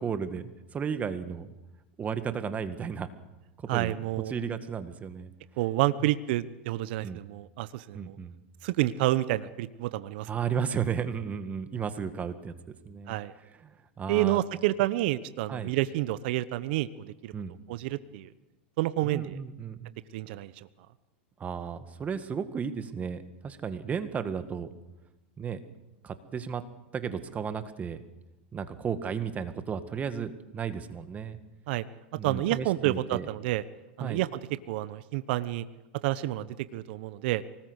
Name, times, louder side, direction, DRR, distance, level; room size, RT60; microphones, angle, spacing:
voice 1, 0.0-1.5 2.0-3.1 3.7-5.3 6.0-6.1 7.0-7.2 7.9-8.4 10.3-12.5 12.8-13.2 13.6-14.4 15.5-15.7 17.3-17.6 19.0-19.9 21.4-24.7 25.4-25.6 26.0-26.6 26.9-28.0 28.5-31.4 32.2-33.3 34.0-34.2, right 6 dB, 25° right, 10 dB, 1.8 m, -34 dB
voice 2, 3.7-4.3 5.6-8.2 8.6-10.3 13.1-13.3 14.1-17.3 17.7-18.3 18.8-19.4 20.1-20.5 31.7-31.8 32.2-33.6 34.0-34.4 34.7-35.6 36.0-36.5 36.7-37.4, right 15 dB, 60° right, 14 dB, 1.0 m, -29 dB
24.5 x 19.5 x 8.2 m, 1.0 s
hypercardioid pair, 115°, 6 cm